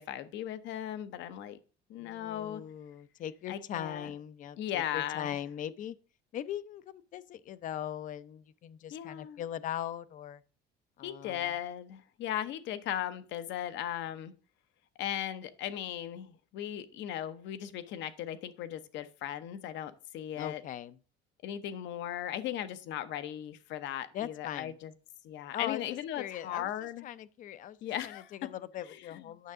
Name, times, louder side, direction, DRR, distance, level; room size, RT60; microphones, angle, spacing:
voice 1, 0.0-1.6 1.9-2.6 3.5-4.1 4.6-5.4 8.9-9.4 11.0-14.3 15.0-20.6 21.4-24.9 25.2-27.1 27.8-28.5 28.9-29.2, left 11 dB, 65° left, 0.8 m, -37 dB
voice 2, 2.0-6.0 6.3-10.4 11.0-11.5 20.4-21.0 24.1-24.7 25.5-27.8 28.0-29.5, left 10 dB, 40° left, 0.5 m, -40 dB
9.3 x 6.6 x 3.6 m
cardioid pair, 160°, 20 cm